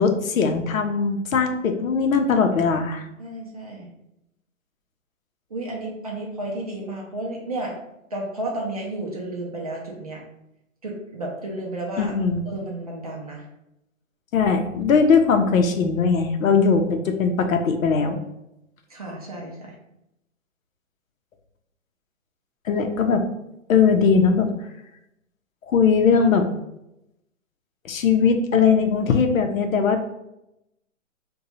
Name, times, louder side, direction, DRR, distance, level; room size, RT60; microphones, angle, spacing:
voice 1, 0.0-3.0 12.0-12.4 14.3-18.2 22.7-23.2 23.7-24.5 25.7-26.4 27.9-30.1, left 5 dB, 80° left, 5 dB, 0.7 m, -20 dB
voice 2, 3.2-3.9 5.5-7.8 8.1-10.2 10.8-12.1 12.5-13.5 18.9-19.7, right 1 dB, 30° right, -2 dB, 0.4 m, -32 dB
2.7 x 2.3 x 4.0 m, 0.86 s
hypercardioid pair, 155°, 40 cm